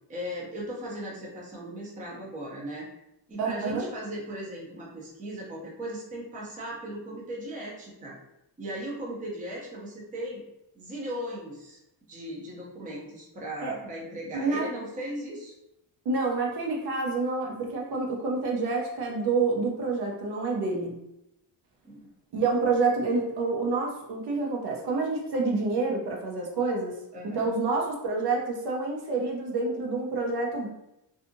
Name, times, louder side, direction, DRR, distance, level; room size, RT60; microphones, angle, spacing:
voice 1, 0.1-2.9 3.3-8.2 8.6-10.4 10.8-11.8 12.1-15.5 21.8-22.0 27.1-27.5, right 1 dB, 20° right, -4 dB, 0.5 m, -37 dB
voice 2, 3.4-3.9 13.6-13.7 14.3-14.7 16.0-21.0 22.3-27.0 27.3-30.7, right 3 dB, 65° right, -1 dB, 0.7 m, -28 dB
2.6 x 2.4 x 2.5 m, 0.86 s
cardioid pair, 165°, 43 cm